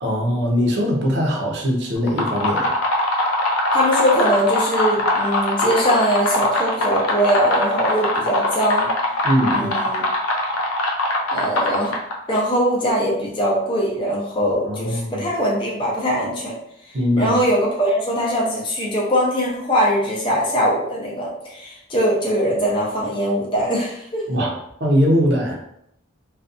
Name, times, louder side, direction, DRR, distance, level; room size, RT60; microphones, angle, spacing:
voice 1, 0.0-2.8 9.2-9.7 14.7-15.3 16.9-17.4 24.3-24.5 24.8-25.6, equal, 55° right, -1 dB, 0.6 m, -21 dB
sound 1, 2.0-12.3, left 1 dB, 85° left, 0.4 m, -22 dB
voice 2, 3.7-8.9 9.5-10.0 11.3-11.9 12.3-16.5 16.9-24.2, equal, 25° left, -4 dB, 0.5 m, -21 dB
2.5 x 2.2 x 2.5 m, 0.74 s
head